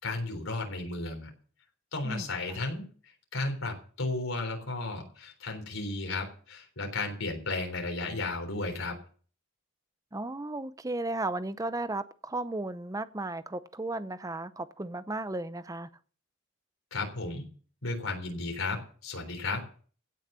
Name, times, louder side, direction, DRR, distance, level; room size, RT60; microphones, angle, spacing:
voice 1, 0.0-1.3 1.9-2.8 3.3-9.0 16.9-17.4 17.8-19.6, left 2 dB, 85° left, 3.7 m, -34 dB
voice 2, 2.0-2.6 10.1-15.9, right 2 dB, 15° right, 0.6 m, -35 dB
16.5 x 6.5 x 6.8 m
head